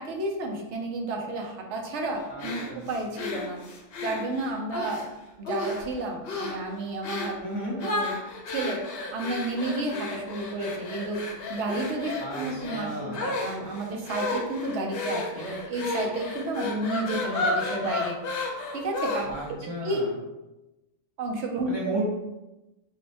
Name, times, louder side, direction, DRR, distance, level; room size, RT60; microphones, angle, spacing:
voice 1, 0.0-3.6 4.0-5.0 5.4-7.3 7.7-8.2 8.5-8.8 9.1-11.2 11.5-18.2 18.7-19.3 19.8-20.1 21.2-22.0, right 2 dB, 80° right, 2 dB, 0.9 m, -31 dB
voice 2, 2.3-2.9 7.4-7.8 12.2-13.2 19.3-20.1 21.6-22.0, right 1 dB, 45° right, -5 dB, 0.3 m, -34 dB
sound 1, 2.4-5.1 5.4-5.9 6.2-6.6 7.0-7.4 7.8-19.5, left 2 dB, 65° left, 0.7 m, -32 dB
2.6 x 2.1 x 4.0 m, 1.0 s
omnidirectional pair, 1.2 m